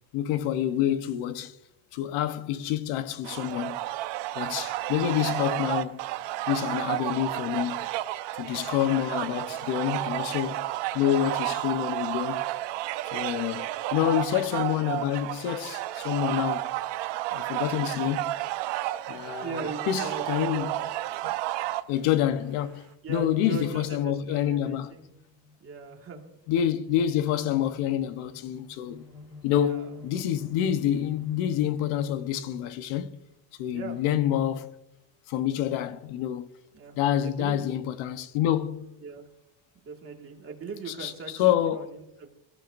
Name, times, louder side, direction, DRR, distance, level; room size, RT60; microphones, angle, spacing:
voice 1, 0.1-1.5 1.9-3.9 4.3-6.0 6.5-7.9 8.4-10.7 10.9-12.5 13.1-16.6 17.3-18.3 19.1-20.7 21.2-21.3 21.9-24.9 26.5-29.1 29.4-33.2 33.6-34.7 35.3-36.5 37.0-39.0 41.0-41.1 41.4-41.9, left 11 dB, 85° left, 1.1 m, -27 dB
sound 1, 3.2-21.8, right 15 dB, 60° right, 0.7 m, -31 dB
voice 2, 19.4-20.7 23.0-25.1 25.6-26.3 29.6-29.9 33.7-34.0 35.8-36.0 36.7-37.7 39.0-39.3 39.8-42.3, right 4 dB, 30° right, 2.0 m, -39 dB
sound 2, 21.6-21.7 22.1-22.2 22.4-32.1, left 3 dB, 10° left, 4.2 m, -50 dB
20.5 x 14.0 x 2.6 m
cardioid pair, 160°, 48 cm